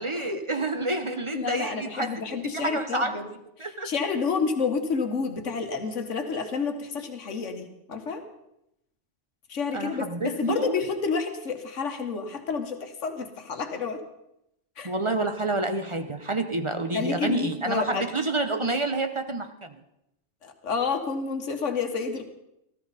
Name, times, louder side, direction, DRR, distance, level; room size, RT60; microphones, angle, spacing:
voice 1, 0.0-3.3 3.6-3.9 9.7-10.8 14.8-19.8, right 2 dB, 30° right, 8 dB, 0.8 m, -29 dB
voice 2, 1.3-3.3 3.6-8.2 9.5-14.0 14.8-14.9 16.9-18.0 20.4-22.3, left 5 dB, 75° left, 6 dB, 1.7 m, -29 dB
19.0 x 14.0 x 4.1 m, 0.83 s
omnidirectional pair, 1.3 m